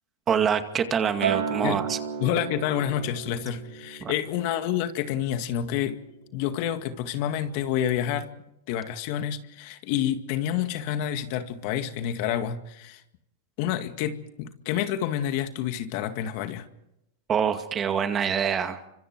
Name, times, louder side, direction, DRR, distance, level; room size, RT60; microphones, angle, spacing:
voice 1, 0.3-2.0 4.0-4.1 17.3-18.8, right 7 dB, 25° right, 7 dB, 2.2 m, -25 dB
Acoustic guitar, 1.2-5.6 6.0-6.4, right 7 dB, 90° right, 4.6 m, -34 dB
voice 2, 2.2-6.0 6.3-8.3 8.7-13.0 13.6-16.7, left 10 dB, 55° left, 8 dB, 2.1 m, -28 dB
29.5 x 25.5 x 4.7 m, 0.85 s
hypercardioid pair, 130°, 0 cm